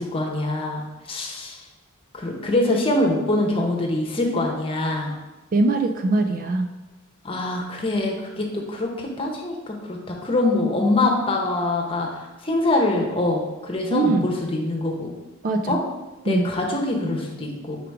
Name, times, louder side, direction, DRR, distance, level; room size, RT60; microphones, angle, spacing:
voice 1, 0.0-1.6 2.1-5.1 7.2-15.1 15.7-15.8 16.2-17.8, left 2 dB, 25° left, 0 dB, 1.0 m, -24 dB
voice 2, 5.5-6.7 13.9-14.3 15.4-15.8 16.2-16.5, right 3 dB, 40° right, 5 dB, 0.4 m, -21 dB
5.0 x 4.7 x 4.7 m, 1.1 s
head